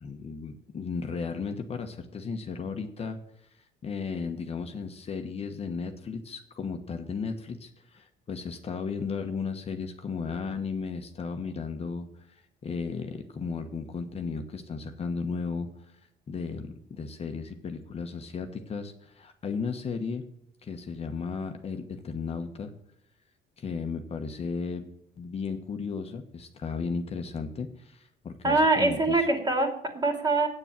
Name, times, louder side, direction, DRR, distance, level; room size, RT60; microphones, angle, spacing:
voice 1, 0.0-16.0 16.3-20.2 20.6-22.7 23.6-24.9 25.2-29.3, left 5 dB, 35° left, 6 dB, 1.1 m, -35 dB
voice 2, 28.4-30.5, right 2 dB, 25° right, 4 dB, 2.5 m, -24 dB
8.8 x 7.0 x 7.4 m, 0.75 s
cardioid pair, 110°, 17 cm